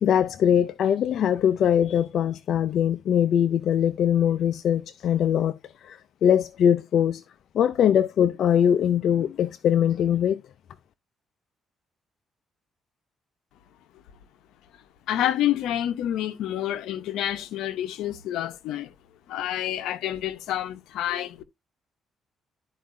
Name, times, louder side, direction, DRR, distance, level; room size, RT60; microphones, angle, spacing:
voice 1, 0.0-7.2 7.5-10.4, left 9 dB, 70° left, 0.5 m, -22 dB
voice 2, 15.1-18.9 19.3-21.4, left 12 dB, 90° left, 0.9 m, -28 dB
12.5 x 4.7 x 2.6 m
cardioid pair, 90°, 0 cm